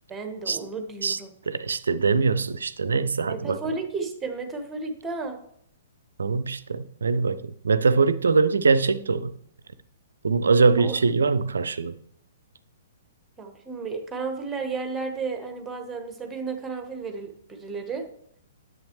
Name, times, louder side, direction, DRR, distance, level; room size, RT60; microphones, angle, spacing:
voice 1, 0.1-1.3 3.3-5.4 10.8-11.0 13.4-18.0, right 4 dB, 10° right, 1.5 m, -33 dB
voice 2, 1.5-3.6 6.2-9.3 10.2-12.0, right 4 dB, 65° right, 0.5 m, -22 dB
10.5 x 7.7 x 3.2 m
figure-of-eight pair, 115°, 0 cm